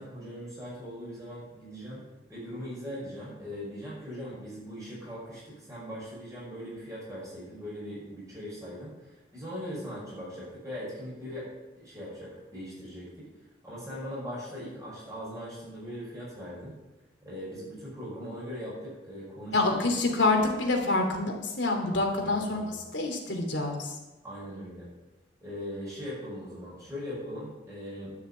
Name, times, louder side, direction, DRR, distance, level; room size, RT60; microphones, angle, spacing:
voice 1, 0.0-2.0 2.3-11.5 11.8-13.3 13.6-16.7 17.2-19.6 22.2-22.8 24.2-24.9 25.4-28.1, equal, 20° right, -7 dB, 5.8 m, -40 dB
voice 2, 19.5-24.0, left 2 dB, 90° left, 2 dB, 2.7 m, -27 dB
12.0 x 7.2 x 8.2 m, 1.1 s
head